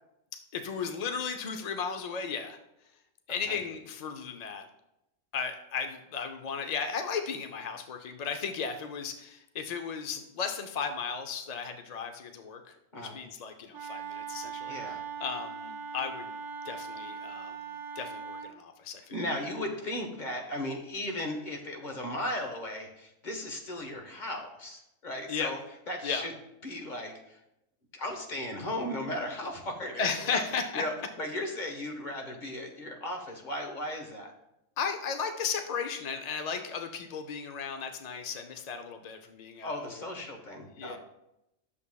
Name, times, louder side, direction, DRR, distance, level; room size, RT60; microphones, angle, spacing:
voice 1, 0.5-2.6 3.3-4.7 5.3-16.3 16.6-17.6 18.0-19.1 25.3-25.6 26.0-26.3 30.0-30.8 34.8-40.1 40.8-41.0, left 6 dB, 60° left, 6 dB, 0.4 m, -35 dB
Wind instrument woodwind instrument, 13.7-18.6, right 6 dB, 70° right, 0.9 m, -40 dB
voice 2, 14.7-15.0 19.1-25.6 25.9-26.3 26.6-27.4 27.9-30.4 30.7-34.3 39.6-41.0, left 1 dB, 40° left, 2 dB, 1.2 m, -36 dB
11.0 x 6.8 x 2.3 m, 0.87 s
omnidirectional pair, 1.4 m